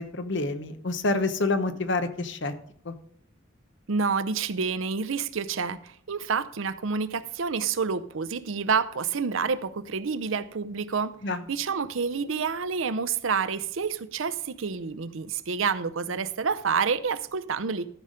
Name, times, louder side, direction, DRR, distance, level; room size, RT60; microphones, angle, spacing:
voice 1, 0.0-2.5 2.8-2.9 11.2-11.4, left 3 dB, 60° left, 0.9 m, -28 dB
voice 2, 3.9-11.1 11.5-17.9, right 5 dB, 75° right, 0.6 m, -28 dB
13.5 x 5.7 x 5.1 m
head